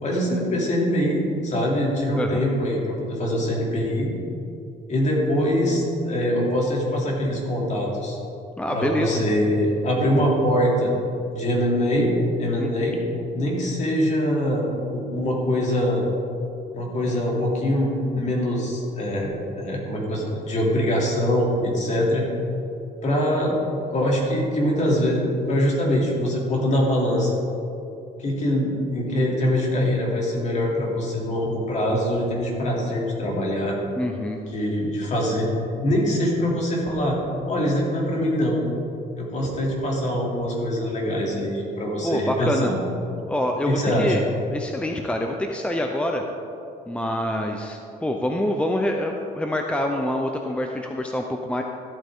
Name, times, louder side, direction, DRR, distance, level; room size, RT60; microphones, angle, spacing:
voice 1, 0.0-4.1 4.9-8.2 8.7-10.9 11.3-12.1 12.4-13.0 13.3-16.0 16.7-22.2 23.0-23.6 23.9-27.4 28.2-33.8 34.5-35.5 35.8-37.2 37.5-38.6 39.2-42.7 43.7-44.2, equal, 45° left, -2 dB, 2.8 m, -23 dB
voice 2, 8.6-9.2 12.6-12.7 34.0-34.4 42.0-42.7 43.3-44.2 44.5-46.2 46.9-51.6, left 1 dB, 5° left, 3 dB, 0.6 m, -26 dB
14.0 x 8.8 x 3.7 m, 2.7 s
cardioid pair, 110°, 17 cm